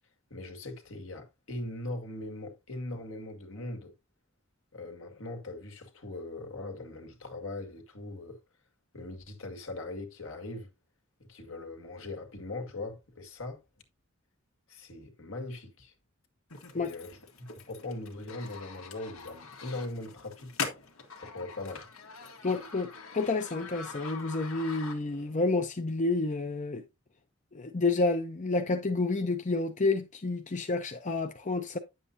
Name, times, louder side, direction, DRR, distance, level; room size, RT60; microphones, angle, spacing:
voice 1, 0.3-3.9 4.7-8.4 8.9-10.7 11.2-13.6 14.7-15.9 16.7-20.5 21.2-21.9, left 2 dB, 70° left, 1.9 m, -40 dB
sound 1, 16.5-25.3, left 5 dB, 90° left, 1.8 m, -43 dB
voice 2, 22.4-26.8 27.5-31.8, left 3 dB, 35° left, 0.7 m, -29 dB
9.7 x 7.6 x 2.7 m
head